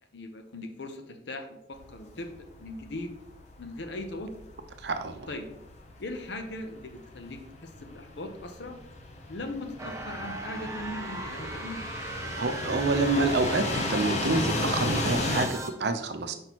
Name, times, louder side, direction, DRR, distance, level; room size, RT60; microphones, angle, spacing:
voice 1, 0.1-2.3 2.6-3.1 3.6-4.3 5.3-5.5 6.0-8.8 9.3-11.9, left 2 dB, 80° left, 6 dB, 0.7 m, -39 dB
sound 1, 1.7-15.5, left 2 dB, 40° left, 0.7 m, -34 dB
voice 2, 4.8-5.3 12.4-16.4, right 3 dB, 70° right, 8 dB, 0.6 m, -28 dB
sound 2, 9.8-15.7, right 2 dB, 15° right, 0.6 m, -38 dB
6.0 x 5.2 x 3.0 m, 0.80 s
head